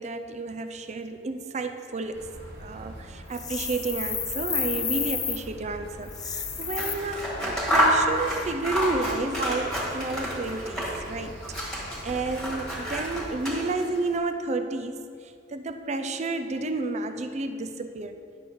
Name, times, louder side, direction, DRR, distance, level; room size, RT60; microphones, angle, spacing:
voice 1, 0.0-2.3 2.6-11.4 11.7-18.2, right 3 dB, 40° right, 7 dB, 0.5 m, -31 dB
sound 1, 2.1-13.4, equal, 70° right, 1.5 m, -43 dB
sound 2, 3.3-5.4 6.1-6.9, left 7 dB, 20° left, 0.5 m, -30 dB
Scissors, 6.6-11.1 11.4-14.0, equal, 5° left, 1.6 m, -28 dB
10.5 x 6.1 x 3.6 m, 2.4 s
head